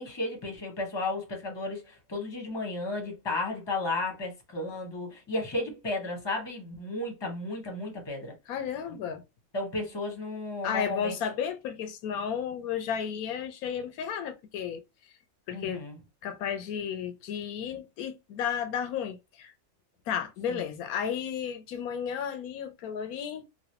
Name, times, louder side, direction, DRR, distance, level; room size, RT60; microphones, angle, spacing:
voice 1, 0.0-8.3 9.5-11.2 15.5-16.0 20.5-20.6, left 2 dB, 20° left, 0.9 m, -33 dB
voice 2, 8.5-9.2 10.6-14.8 15.5-15.8 16.2-19.5 20.1-23.5, left 8 dB, 85° left, 1.0 m, -33 dB
3.1 x 2.5 x 2.8 m
omnidirectional pair, 1.5 m